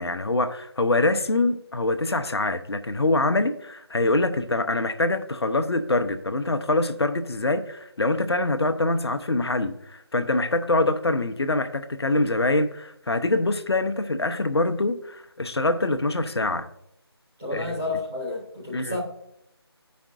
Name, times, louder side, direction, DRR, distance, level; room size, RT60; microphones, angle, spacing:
voice 1, 0.0-16.7 17.5-17.7 18.7-19.0, left 2 dB, 70° left, 0.8 m, -24 dB
voice 2, 17.4-19.0, left 2 dB, 5° right, 0.4 m, -30 dB
14.5 x 5.1 x 2.5 m
figure-of-eight pair, 165°, 14 cm